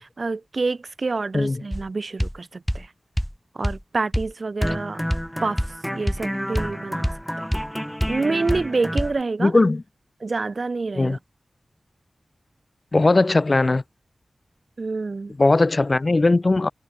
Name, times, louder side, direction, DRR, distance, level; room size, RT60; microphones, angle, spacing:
voice 1, 0.0-2.9 3.5-5.0 5.4-5.6 5.9-7.5 8.1-9.5 10.2-11.2 14.8-15.3, right 3 dB, 60° right, 0.4 m, -27 dB
sound 1, 1.7-1.9 2.2-2.4 2.7-2.9 3.2-3.3 3.6-3.8 4.1-4.3 4.6-9.2, equal, ahead, 1.3 m, -27 dB
voice 2, 9.4-9.8 10.9-11.2 12.9-13.8 15.4-16.7, left 2 dB, 45° left, 0.8 m, -18 dB
wide cardioid pair, 60°, 0 cm